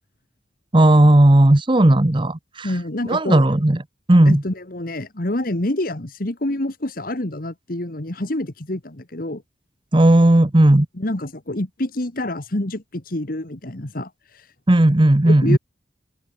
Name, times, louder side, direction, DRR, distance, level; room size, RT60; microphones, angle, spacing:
voice 1, 0.7-2.7 3.0-3.8 4.1-4.4 9.9-10.9 14.7-15.6, right 1 dB, 25° right, 0.9 m, -14 dB
voice 2, 2.6-3.4 4.2-9.4 11.0-14.5 15.2-15.6, left 1 dB, 50° left, 1.8 m, -27 dB
head